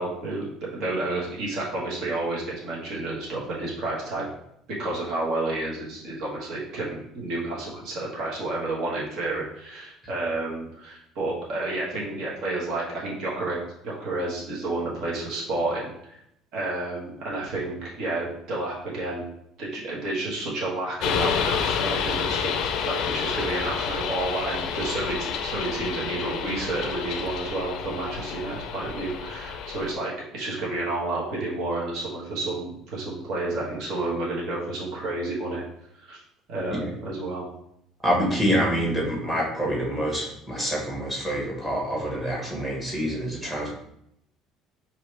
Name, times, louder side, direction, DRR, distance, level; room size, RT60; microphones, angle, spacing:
voice 1, 0.0-4.3 4.8-13.6 13.8-16.2 16.5-19.2 19.6-35.6 35.9-36.2 36.5-37.4, right 2 dB, 60° right, -4 dB, 1.2 m, -30 dB
sound 1, 21.0-29.9, left 7 dB, 60° left, 0.4 m, -29 dB
voice 2, 38.0-43.7, equal, 10° right, -4 dB, 1.4 m, -26 dB
4.6 x 2.9 x 3.3 m, 0.77 s
cardioid pair, 150°, 0 cm